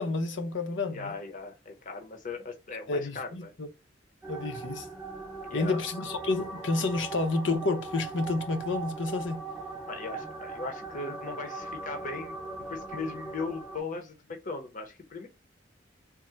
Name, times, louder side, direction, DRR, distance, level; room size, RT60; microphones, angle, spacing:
voice 1, 0.0-1.1 2.9-3.7 4.3-4.9 5.5-9.4, left 3 dB, 80° left, 0.8 m, -30 dB
voice 2, 0.9-3.5 5.5-5.8 9.9-12.4 12.7-15.3, left 3 dB, 45° left, 0.7 m, -38 dB
sound 1, 4.2-13.8, right 3 dB, ahead, 0.7 m, -39 dB
3.6 x 2.1 x 4.2 m
head